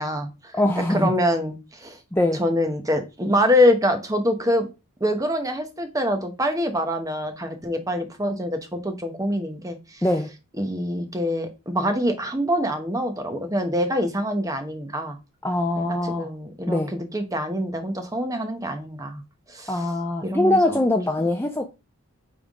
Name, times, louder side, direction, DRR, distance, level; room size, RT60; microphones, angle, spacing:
voice 1, 0.0-0.5 0.9-2.0 2.3-4.7 5.0-10.0 10.6-15.2 15.8-19.2 19.5-19.8 20.2-20.8, equal, 15° right, 0.9 m, -25 dB
voice 2, 0.5-1.1 2.1-2.4 10.0-10.3 15.4-16.3 16.7-16.9 19.7-21.7, left 1 dB, 10° left, 0.5 m, -22 dB
9.0 x 3.5 x 3.6 m
head